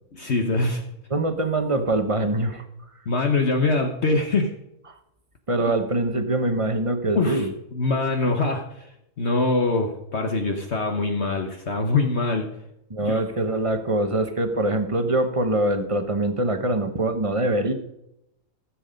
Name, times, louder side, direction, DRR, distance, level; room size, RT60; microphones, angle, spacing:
voice 1, 0.1-0.8 3.1-4.5 7.1-7.5 7.7-8.9 9.2-12.5 13.0-13.2, left 3 dB, 55° left, 3 dB, 1.3 m, -23 dB
voice 2, 1.1-2.6 5.5-7.5 12.9-17.7, right 2 dB, 25° right, 8 dB, 1.0 m, -23 dB
16.0 x 7.6 x 5.1 m, 0.83 s
omnidirectional pair, 1.5 m